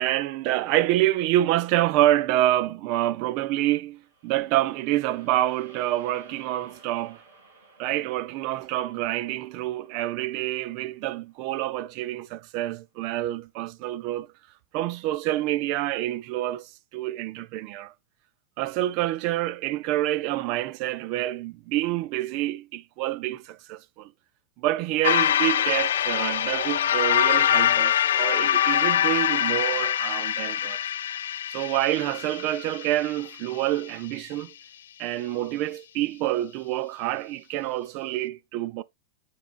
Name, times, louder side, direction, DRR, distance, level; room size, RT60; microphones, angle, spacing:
voice 1, 0.0-7.2 7.8-14.3 14.7-17.9 18.6-24.1 24.6-30.8 31.5-34.5 35.0-38.8, right 14 dB, 35° right, 0.4 m, -27 dB
sound 1, 3.9-12.2, right 3 dB, 55° right, 2.8 m, -55 dB
sound 2, 25.0-33.5, left 10 dB, 85° left, 0.3 m, -24 dB
9.2 x 4.7 x 2.4 m
supercardioid pair, 170°, 0 cm